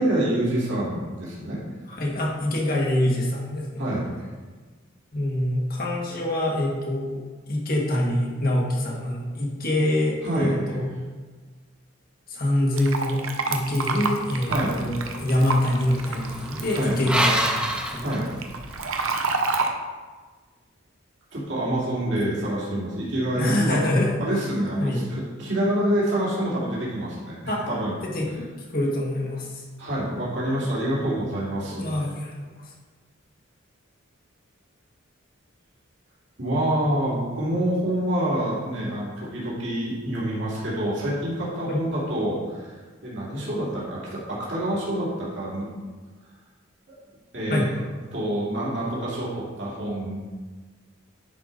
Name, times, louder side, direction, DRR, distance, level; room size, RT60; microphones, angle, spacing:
voice 1, 0.0-1.6 3.8-4.3 10.2-10.5 14.5-14.8 16.7-17.0 18.0-18.3 21.3-23.8 24.2-27.4 27.7-27.9 29.8-31.9 36.4-45.7 46.9-47.0 47.3-47.7 48.1-50.2, right 1 dB, 60° right, -7 dB, 2.5 m, -27 dB
voice 2, 1.9-3.7 5.1-7.2 7.5-10.9 12.3-17.5 17.9-18.2 23.3-24.1 24.8-25.0 27.5-27.7 28.0-28.3 28.7-29.6 31.7-32.3 32.6-32.7 41.7-41.8 47.5-47.7, left 1 dB, 45° left, -3 dB, 1.6 m, -25 dB
Fill (with liquid), 12.8-19.7, right 4 dB, 85° right, 0.8 m, -30 dB
sound 1, 14.5-18.9, right 1 dB, 5° right, 0.6 m, -29 dB
10.5 x 4.7 x 4.0 m, 1.4 s
head